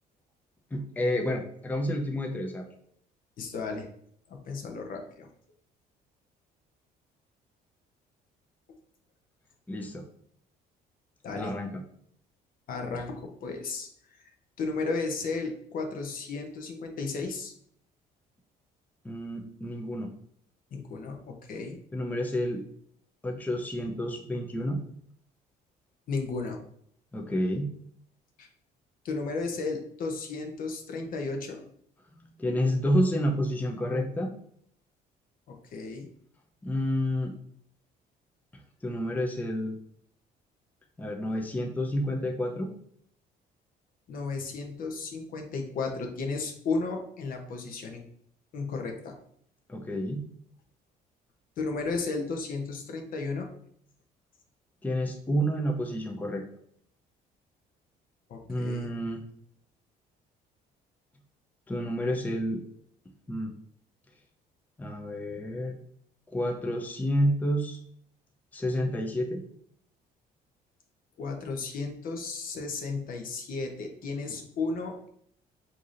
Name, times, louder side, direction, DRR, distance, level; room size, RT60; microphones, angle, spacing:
voice 1, 0.7-2.7 9.7-10.0 11.4-11.8 19.0-20.1 21.9-22.6 23.2-24.8 27.1-27.7 32.4-34.3 36.6-37.3 38.8-39.8 41.0-42.7 49.7-50.2 54.8-56.4 58.5-59.2 61.7-62.6 63.3-63.5 64.8-65.7 66.3-67.8 68.5-69.4, equal, 10° left, 1 dB, 0.5 m, -29 dB
voice 2, 3.4-3.9 4.3-5.3 11.2-11.5 12.7-14.3 14.6-17.5 20.7-21.8 26.1-26.6 28.4-28.5 29.0-31.6 35.5-36.1 44.1-48.0 48.5-49.2 51.6-53.5 58.3-58.9 71.2-75.1, left 4 dB, 55° left, 3 dB, 0.7 m, -34 dB
4.6 x 2.7 x 2.5 m, 0.65 s
cardioid pair, 110°, 17 cm